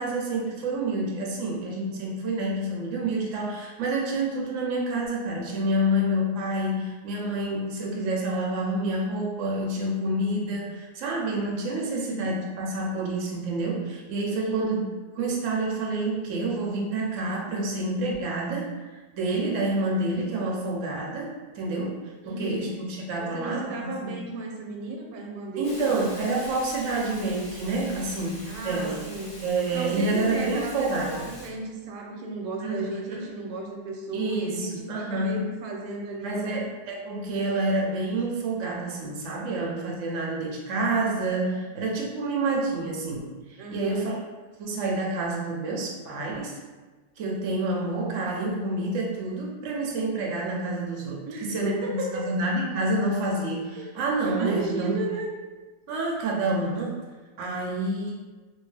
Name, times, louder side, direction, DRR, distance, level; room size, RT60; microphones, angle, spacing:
voice 1, 0.0-14.9 15.2-18.7 19.2-22.0 22.3-24.2 25.6-29.0 29.4-31.3 32.6-33.0 33.2-33.3 34.1-35.5 36.2-44.1 44.6-46.6 47.2-55.0 55.9-57.0 57.4-58.1, right 2 dB, 60° right, -2 dB, 0.8 m, -28 dB
voice 2, 11.8-12.3 14.3-14.8 22.2-22.7 23.2-25.9 28.5-29.4 29.7-36.7 43.6-44.1 51.3-52.3 53.8-53.9 54.2-55.3, right 2 dB, 85° right, 1 dB, 1.2 m, -34 dB
Hiss, 25.6-31.5, left 1 dB, 55° left, 0.5 m, -44 dB
2.8 x 2.6 x 3.2 m, 1.3 s
omnidirectional pair, 1.9 m